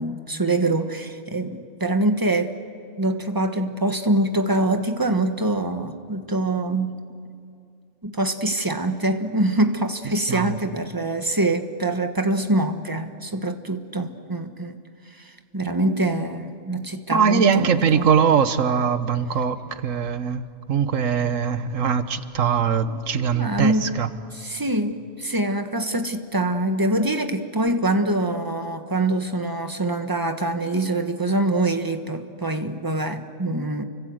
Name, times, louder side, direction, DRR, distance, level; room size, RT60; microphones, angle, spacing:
voice 1, 0.0-2.6 3.0-7.0 8.0-14.8 15.1-18.0 22.9-23.9 24.3-33.8, right 2 dB, 15° right, 7 dB, 1.4 m, -24 dB
voice 2, 17.1-19.6 19.8-24.1, right 6 dB, 85° right, 11 dB, 1.5 m, -21 dB
30.0 x 25.0 x 8.0 m, 2.4 s
omnidirectional pair, 1.3 m